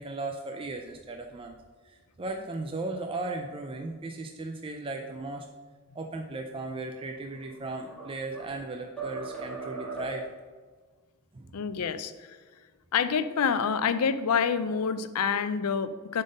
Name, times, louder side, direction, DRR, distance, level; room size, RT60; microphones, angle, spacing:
voice 1, 0.0-1.5 1.8-5.5 5.9-10.2 11.3-11.5, right 2 dB, 25° right, 4 dB, 0.4 m, -36 dB
sound 1, 7.2-8.6 9.0-10.4, right 4 dB, 5° left, 1.9 m, -39 dB
voice 2, 11.5-12.4 12.9-16.2, left 6 dB, 85° left, 12 dB, 0.5 m, -27 dB
7.6 x 3.8 x 5.2 m, 1.4 s
head